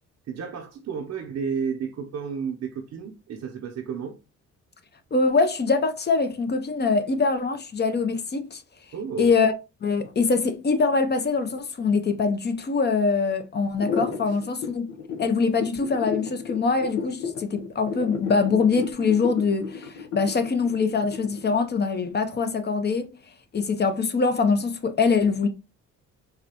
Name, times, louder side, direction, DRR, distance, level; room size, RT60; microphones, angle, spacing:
voice 1, 0.3-4.2 8.9-9.3 14.3-14.4, right 6 dB, 60° right, 0.7 m, -32 dB
voice 2, 5.1-8.6 9.2-9.5 9.8-14.9 15.2-23.1 23.5-25.5, left 4 dB, 35° left, 0.6 m, -23 dB
sound 1, 13.7-21.6, left 5 dB, 80° left, 1.0 m, -32 dB
4.7 x 2.2 x 2.9 m
cardioid pair, 90°, 30 cm